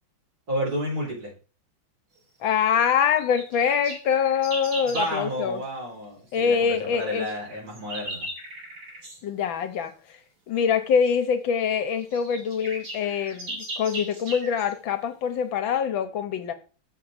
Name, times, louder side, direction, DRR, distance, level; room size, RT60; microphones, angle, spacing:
voice 1, 0.5-1.3 4.8-8.3, equal, 45° right, -2 dB, 4.4 m, -31 dB
voice 2, 2.4-5.6 6.3-7.3 9.2-9.9 10.5-16.5, left 7 dB, 75° left, 9 dB, 1.7 m, -24 dB
sound 1, 3.2-5.2 7.3-9.2 11.1-11.2 11.7-11.8 12.0-14.7, right 1 dB, 70° right, 4.2 m, -37 dB
7.1 x 7.1 x 5.0 m, 0.36 s
omnidirectional pair, 2.2 m